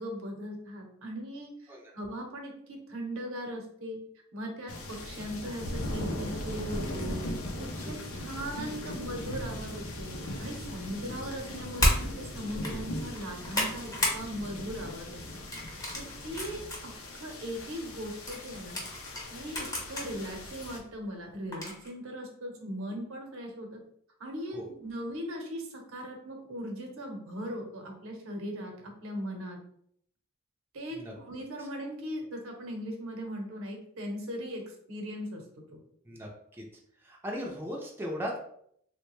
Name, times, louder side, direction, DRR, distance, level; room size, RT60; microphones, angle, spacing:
voice 1, 0.0-4.0 4.3-7.2 7.6-10.1 10.4-15.4 15.9-18.8 19.3-23.8 24.2-29.6 30.7-35.4 35.7-35.8, equal, 75° right, 2 dB, 0.8 m, -39 dB
sound 1, 4.7-20.8, left 1 dB, 85° left, 0.6 m, -39 dB
sound 2, 11.8-12.0 12.5-12.7 13.1-14.2 14.6-14.9 15.5-16.8 17.3-17.4 18.3-20.1 20.6-20.7 21.5-21.9, left 1 dB, 15° left, 0.8 m, -31 dB
voice 2, 36.0-36.7 37.0-38.4, equal, 10° right, -2 dB, 0.5 m, -38 dB
3.3 x 2.2 x 3.1 m, 0.68 s
head